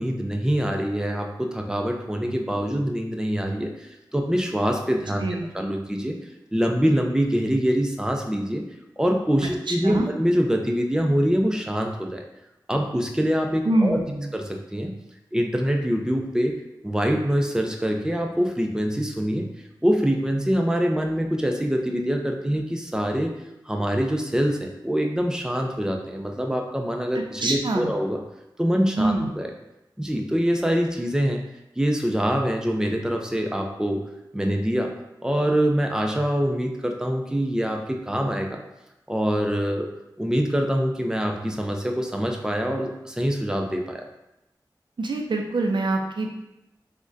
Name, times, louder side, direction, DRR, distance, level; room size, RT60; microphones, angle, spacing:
voice 1, 0.0-5.2 5.5-6.2 6.5-8.6 9.0-12.2 12.7-14.0 14.3-14.9 15.3-16.5 16.8-19.5 19.8-23.3 23.7-28.2 28.6-29.5 30.0-31.4 31.8-34.0 34.3-34.9 35.2-38.6 39.1-39.9 40.2-44.1, equal, 10° right, 2 dB, 0.4 m, -24 dB
voice 2, 5.2-5.5 9.4-10.1 13.6-14.3 27.4-27.9 29.0-29.3 45.0-46.3, right 2 dB, 75° right, 2 dB, 0.4 m, -25 dB
3.7 x 2.1 x 2.5 m, 0.89 s
wide cardioid pair, 45°, 8 cm